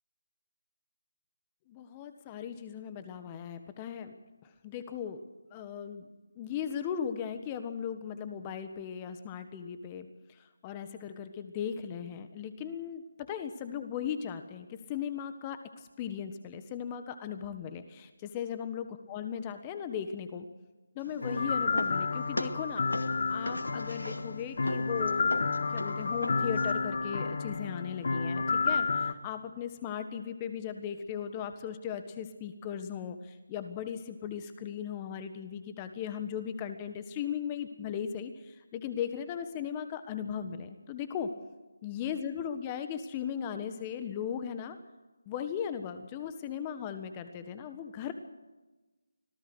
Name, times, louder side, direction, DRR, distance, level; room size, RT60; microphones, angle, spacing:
voice 1, 1.7-4.1 4.4-5.2 5.5-6.1 6.4-20.5 20.9-22.9 23.3-41.3 41.8-44.8 45.3-48.1, left 8 dB, 20° left, 9 dB, 1.5 m, -37 dB
sound 1, 21.0-26.8, left 1 dB, 90° left, 2.2 m, -40 dB
sound 2, 21.2-29.1, left 4 dB, 55° left, 1.6 m, -31 dB
25.5 x 18.0 x 6.4 m, 1.1 s
figure-of-eight pair, 155°, 0 cm